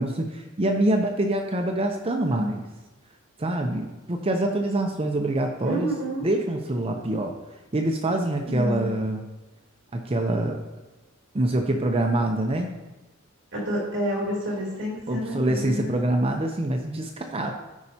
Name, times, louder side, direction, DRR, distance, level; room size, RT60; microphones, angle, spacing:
voice 1, 0.0-2.6 3.4-5.9 6.2-7.3 7.7-9.2 9.9-10.6 11.3-12.7 15.1-17.5, right 1 dB, 30° right, 3 dB, 0.6 m, -25 dB
voice 2, 5.6-6.3 8.5-8.9 13.5-16.0, equal, 60° right, -5 dB, 3.0 m, -29 dB
14.0 x 5.3 x 2.8 m, 1.1 s
head